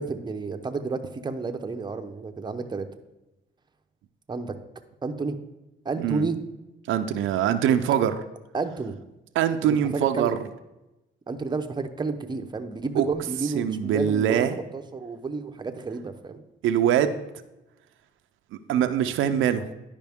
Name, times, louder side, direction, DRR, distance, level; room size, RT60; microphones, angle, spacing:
voice 1, 0.0-2.9 4.3-4.6 5.0-5.4 5.8-6.4 8.5-8.9 9.6-10.4 11.3-16.4, right 4 dB, 20° right, 6 dB, 0.7 m, -31 dB
voice 2, 6.9-8.2 9.3-10.4 13.0-13.1 13.6-14.6 16.6-17.2 18.7-19.7, right 9 dB, 80° right, 8 dB, 0.5 m, -23 dB
10.5 x 5.1 x 3.5 m, 0.98 s
cardioid pair, 90°, 20 cm